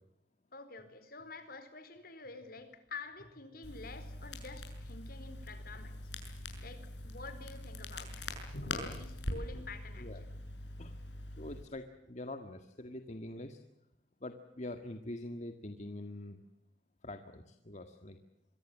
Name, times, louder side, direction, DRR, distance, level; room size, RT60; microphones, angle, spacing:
voice 1, 0.5-6.1 6.6-8.3 8.6-10.4, left 3 dB, 60° left, 11 dB, 4.3 m, -48 dB
Crackle, 3.6-11.6, left 1 dB, 85° left, 6.8 m, -43 dB
voice 2, 11.4-13.6 14.2-16.4 17.0-18.2, left 1 dB, 40° left, 7 dB, 1.8 m, -44 dB
27.0 x 23.0 x 7.4 m, 0.87 s
head